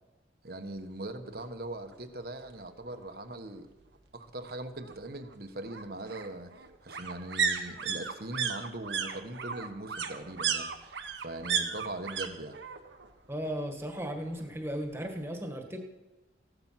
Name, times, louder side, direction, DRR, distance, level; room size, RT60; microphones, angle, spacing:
voice 1, 0.4-3.7 4.1-6.5 6.8-12.6, right 1 dB, 55° right, 8 dB, 1.3 m, -41 dB
sound 1, 1.4-1.5 1.9-2.0 2.2-3.2 4.5-12.3 12.5-13.1 13.4-14.4 14.7-14.8, right 6 dB, 80° right, 1.4 m, -34 dB
voice 2, 13.3-15.9, equal, 15° right, 3 dB, 1.7 m, -36 dB
15.5 x 12.0 x 5.8 m, 1.1 s
head